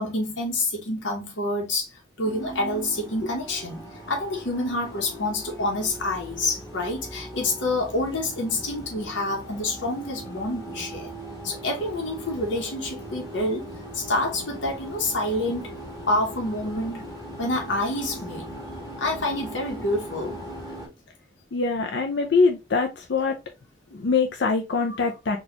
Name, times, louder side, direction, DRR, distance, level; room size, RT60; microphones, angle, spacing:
voice 1, 0.0-11.1 11.4-15.8 16.1-17.0 17.4-18.5 19.0-20.4, left 2 dB, 85° left, 0.9 m, -28 dB
sound 1, 2.2-20.9, right 1 dB, 20° left, 1.5 m, -39 dB
voice 2, 21.5-23.4 23.9-25.4, left 4 dB, 65° left, 0.5 m, -23 dB
4.0 x 2.3 x 2.8 m
head